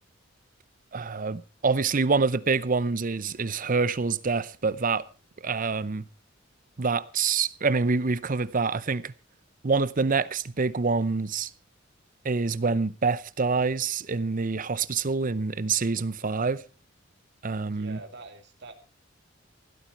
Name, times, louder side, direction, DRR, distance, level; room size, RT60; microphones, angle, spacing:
voice 1, 0.9-5.0 5.4-6.1 6.8-9.1 9.6-11.5 12.2-16.6 17.4-18.0, right 4 dB, 40° right, 0.7 m, -26 dB
voice 2, 17.6-18.7, right 3 dB, 60° right, 2.8 m, -45 dB
16.0 x 13.0 x 4.6 m
head